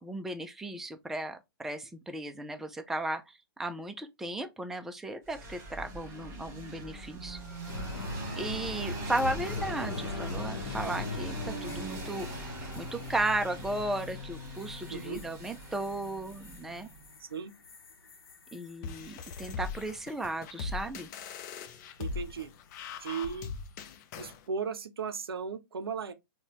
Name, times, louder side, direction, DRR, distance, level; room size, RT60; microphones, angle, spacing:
voice 1, 0.0-3.2 3.6-7.4 8.4-12.3 12.8-16.9 18.5-21.1, right 2 dB, 5° right, 0.3 m, -35 dB
sound 1, 5.3-17.0, right 1 dB, 25° right, 1.5 m, -41 dB
sound 2, 7.7-19.5 19.8-20.3 22.2-22.6, left 2 dB, 80° left, 0.8 m, -42 dB
voice 2, 14.9-15.2 17.2-17.5 22.0-22.5 23.0-23.5 24.2-26.1, right 6 dB, 85° right, 0.5 m, -36 dB
sound 3, 18.8-24.4, left 5 dB, 50° left, 0.6 m, -40 dB
3.9 x 2.2 x 2.9 m
hypercardioid pair, 120°, 12 cm